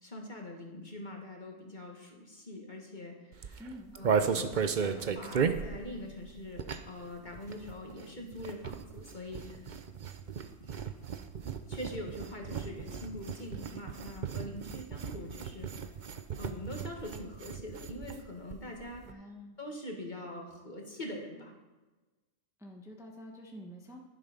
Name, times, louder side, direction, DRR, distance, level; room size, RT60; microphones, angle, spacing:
voice 1, 0.0-3.6 3.9-9.6 10.6-11.0 11.7-15.7 16.4-19.3 19.6-21.5, left 1 dB, 35° left, 1 dB, 2.0 m, -43 dB
sound 1, 3.3-7.1 7.3-18.2 18.5-18.6 18.8-19.1, right 6 dB, 45° right, 0.7 m, -35 dB
voice 2, 3.6-4.0 19.0-19.6 22.6-24.0, equal, 5° right, 0 dB, 1.0 m, -47 dB
11.0 x 11.0 x 5.3 m, 1.2 s
omnidirectional pair, 1.4 m